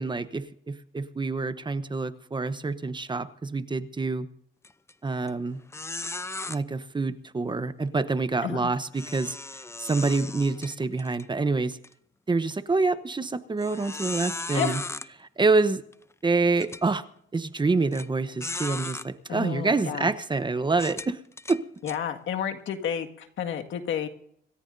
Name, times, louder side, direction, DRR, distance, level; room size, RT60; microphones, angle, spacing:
voice 1, 0.0-4.3 5.0-5.6 6.5-11.8 12.3-14.8 15.2-15.8 16.2-17.0 17.3-21.2 21.5-21.6, right 3 dB, 25° right, 12 dB, 1.0 m, -27 dB
sound 1, 4.6-4.9 5.3-5.4 5.7-6.6 8.9-11.3 11.7-11.9 12.5-12.6 13.6-15.1 15.9-16.0 16.6-16.8 17.9-18.1 18.4-19.1 19.7-19.9 20.7-22.0, left 3 dB, 15° left, 0.6 m, -36 dB
voice 2, 19.3-20.1 21.8-24.1, left 8 dB, 75° left, 4 dB, 2.0 m, -31 dB
26.5 x 14.0 x 2.7 m, 0.68 s
cardioid pair, 90°, 20 cm